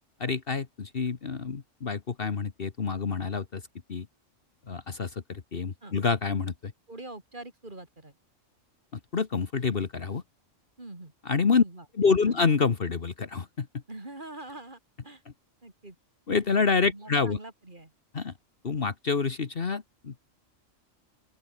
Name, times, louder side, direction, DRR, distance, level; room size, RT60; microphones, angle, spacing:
voice 1, 0.2-3.6 3.9-4.1 4.7-6.7 8.9-10.2 11.2-11.6 12.0-13.7 16.3-17.4 18.1-18.3 18.6-20.2, left 5 dB, 45° left, 1.4 m, -27 dB
voice 2, 6.9-8.2 10.8-11.1 11.6-11.9 12.3-12.4 13.9-15.2 15.6-16.0 16.8-17.9, right 2 dB, 40° right, 3.7 m, -44 dB
open air
omnidirectional pair, 1.3 m